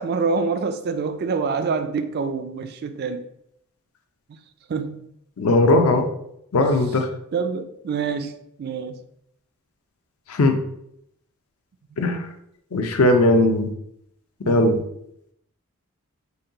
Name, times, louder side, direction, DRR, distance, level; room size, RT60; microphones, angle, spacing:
voice 1, 0.0-3.2 4.7-5.1 6.6-6.7 7.3-8.3 8.6-9.0 14.5-14.8, right 4 dB, 45° right, 9 dB, 0.3 m, -26 dB
voice 2, 5.4-6.1 6.5-7.1 10.3-10.6 12.0-12.3 12.7-13.7 14.5-14.8, left 2 dB, 70° left, 5 dB, 0.5 m, -18 dB
4.1 x 2.2 x 3.8 m, 0.75 s
head